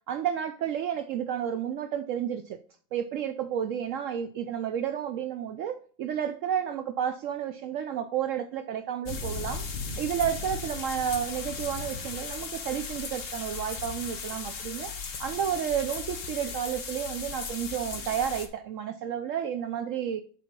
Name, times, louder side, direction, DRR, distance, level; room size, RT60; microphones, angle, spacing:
voice 1, 0.1-2.6 2.9-9.6 10.0-14.9 15.2-20.2, right 9 dB, 75° right, 0.7 m, -31 dB
sound 1, 9.1-17.8, left 9 dB, 75° left, 1.5 m, -46 dB
sound 2, 9.1-18.5, left 5 dB, 50° left, 1.4 m, -37 dB
8.4 x 4.6 x 5.2 m
omnidirectional pair, 1.9 m